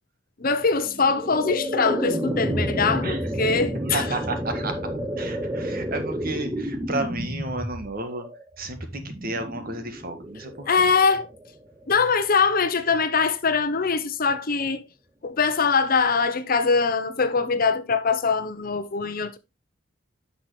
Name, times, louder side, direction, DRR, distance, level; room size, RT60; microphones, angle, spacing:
voice 1, 0.4-4.1 10.7-11.3 11.9-14.8 15.2-19.4, left 5 dB, 45° left, 0.8 m, -22 dB
sound 1, 0.8-12.0, equal, 15° right, 0.7 m, -30 dB
voice 2, 3.9-4.8 5.2-8.3 8.6-10.9, right 2 dB, 50° right, 1.6 m, -32 dB
10.0 x 6.0 x 3.1 m
head